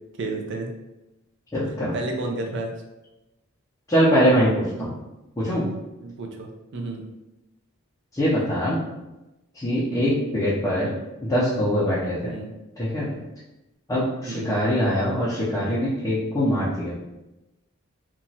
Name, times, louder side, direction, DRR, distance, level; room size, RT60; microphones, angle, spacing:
voice 1, 0.2-0.7 1.9-2.7 4.8-4.9 6.0-7.0 9.8-10.0 12.2-12.5 14.2-14.6, right 2 dB, 55° right, 2 dB, 0.5 m, -32 dB
voice 2, 1.5-1.9 3.9-5.0 5.4-5.7 8.1-8.8 9.5-10.9 11.2-12.4 12.8-13.2 13.9-17.0, equal, 15° left, -9 dB, 0.5 m, -23 dB
2.9 x 2.3 x 2.7 m, 0.99 s
head